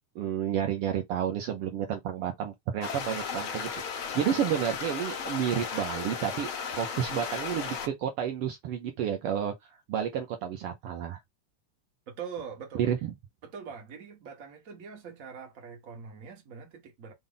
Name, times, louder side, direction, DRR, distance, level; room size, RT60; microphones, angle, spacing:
voice 1, 0.1-6.5 6.8-11.2 12.8-13.1, right 9 dB, 90° right, 1.2 m, -31 dB
sound 1, 2.8-7.9, left 6 dB, 60° left, 1.5 m, -35 dB
voice 2, 12.1-12.9 13.4-17.1, right 6 dB, 50° right, 0.9 m, -43 dB
5.4 x 2.1 x 3.8 m
omnidirectional pair, 3.4 m